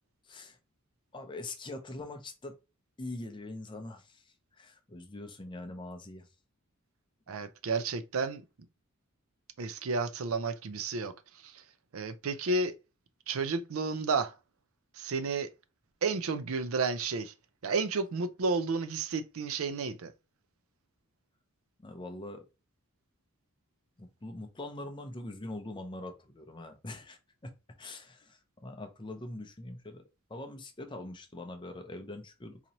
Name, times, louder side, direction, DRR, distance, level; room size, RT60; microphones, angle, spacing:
voice 1, 0.3-0.6 1.1-2.5 3.0-4.2 4.6-6.3 21.8-22.4 24.0-27.5 27.8-30.0 30.3-32.6, left 2 dB, 20° left, 0.6 m, -43 dB
voice 2, 7.3-8.4 9.6-11.1 11.4-11.6 11.9-12.7 13.3-14.3 15.0-15.5 16.0-17.3 17.6-20.1, right 4 dB, 70° right, 0.5 m, -31 dB
4.0 x 2.9 x 2.9 m
head